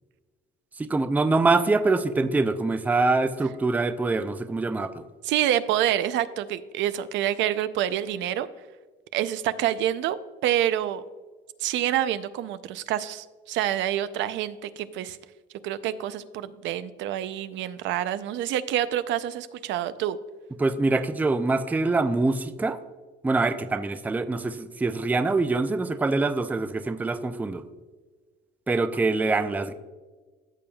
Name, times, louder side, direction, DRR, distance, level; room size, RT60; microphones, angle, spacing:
voice 1, 0.8-5.0 20.6-22.8 23.2-27.6 28.7-29.7, right 3 dB, 10° right, 11 dB, 0.4 m, -24 dB
voice 2, 5.2-8.5 9.1-11.0 11.6-15.2 15.6-20.2, right 11 dB, 70° right, 13 dB, 0.5 m, -27 dB
14.0 x 7.0 x 2.3 m, 1.4 s
cardioid pair, 125°, 20 cm